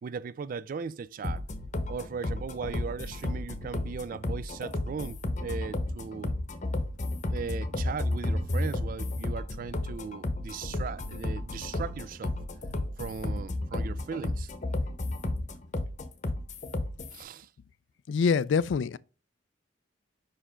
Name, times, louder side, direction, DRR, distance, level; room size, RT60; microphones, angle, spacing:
voice 1, 0.0-1.4 1.9-6.3 7.3-12.4 13.0-14.5 17.1-17.5, right 5 dB, 45° right, 0.3 m, -38 dB
sound 1, 1.2-17.2, left 1 dB, 40° left, 0.8 m, -32 dB
voice 2, 18.1-19.0, left 5 dB, 75° left, 0.3 m, -25 dB
5.5 x 5.0 x 3.6 m
head